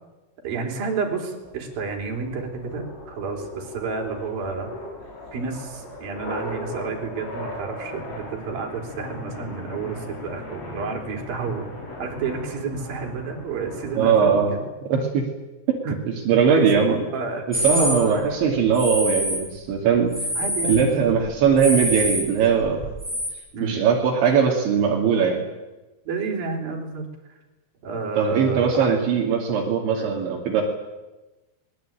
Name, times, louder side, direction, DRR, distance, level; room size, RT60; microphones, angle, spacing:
voice 1, 0.4-4.7 5.3-14.6 15.8-15.9 16.5-17.5 17.8-18.4 20.4-21.1 23.5-24.0 26.1-27.1 27.8-29.0 29.9-30.1, right 4 dB, 50° right, 2 dB, 5.6 m, -30 dB
sound 1, 1.4-14.4, left 1 dB, 80° left, 9.1 m, -38 dB
voice 2, 14.0-14.5 14.9-15.3 15.7-17.0 17.6-20.1 20.6-22.8 23.6-25.4 28.2-30.6, right 6 dB, 75° right, 0 dB, 4.9 m, -20 dB
sound 2, 17.5-18.0 18.7-19.4 19.9-20.9 21.2-23.3, equal, ahead, 6.4 m, -26 dB
22.5 x 22.0 x 9.1 m, 1.1 s
omnidirectional pair, 5.4 m